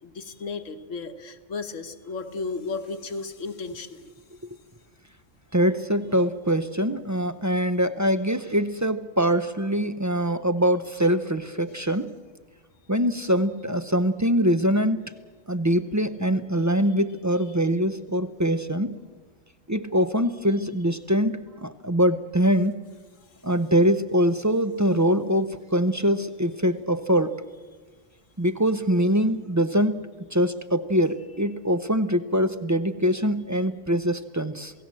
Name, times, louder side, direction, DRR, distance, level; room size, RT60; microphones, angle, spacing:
voice 1, 0.0-4.1 5.5-5.6 11.7-11.8 16.9-17.0 17.4-17.6 23.2-23.4, left 4 dB, 75° left, 7 dB, 1.7 m, -35 dB
voice 2, 5.5-12.1 12.9-15.1 15.5-19.0 19.7-22.8 23.4-27.4 28.4-34.7, equal, 20° right, 12 dB, 0.4 m, -23 dB
27.5 x 17.5 x 7.5 m, 1.4 s
omnidirectional pair, 1.3 m